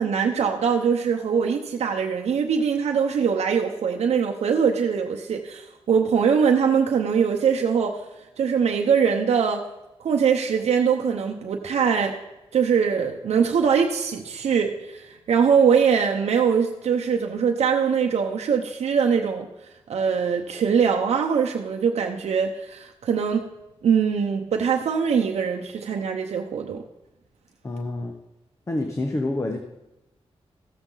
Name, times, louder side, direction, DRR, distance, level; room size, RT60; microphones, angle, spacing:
voice 1, 0.0-8.0 8.4-9.7 10.0-12.2 12.5-19.5 19.9-23.4 23.8-26.8, right 6 dB, 80° right, 2 dB, 0.8 m, -22 dB
voice 2, 27.6-28.1 28.7-29.6, left 2 dB, 25° left, 4 dB, 1.0 m, -27 dB
15.0 x 7.2 x 3.9 m, 0.99 s
cardioid pair, 80°, 11 cm